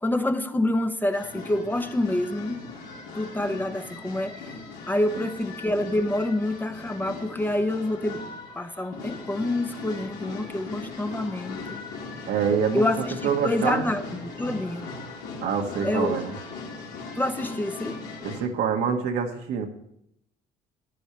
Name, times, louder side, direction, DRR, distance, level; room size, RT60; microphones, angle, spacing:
voice 1, 0.0-2.6 3.1-4.4 4.9-8.2 8.5-11.6 12.7-14.9 15.8-16.2 17.2-18.0, left 1 dB, 10° left, 8 dB, 0.8 m, -27 dB
sound 1, 1.1-18.4, left 3 dB, 85° left, 4.1 m, -39 dB
voice 2, 12.3-12.8 13.2-13.9 15.4-16.3 18.2-19.7, right 7 dB, 80° right, 3 dB, 1.6 m, -26 dB
14.5 x 9.9 x 3.3 m, 0.78 s
cardioid pair, 110°, 17 cm